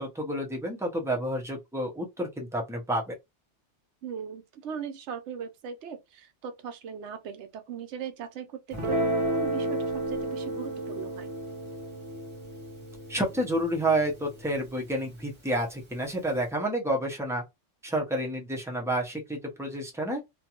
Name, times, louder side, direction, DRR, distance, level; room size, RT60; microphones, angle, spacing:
voice 1, 0.0-3.1 13.1-17.4 17.8-20.2, right 1 dB, 5° right, 0.5 m, -29 dB
voice 2, 4.0-11.3, right 7 dB, 80° right, 0.9 m, -39 dB
Guitar, 8.7-15.3, right 1 dB, 30° right, 0.9 m, -33 dB
2.5 x 2.2 x 2.8 m
omnidirectional pair, 1.2 m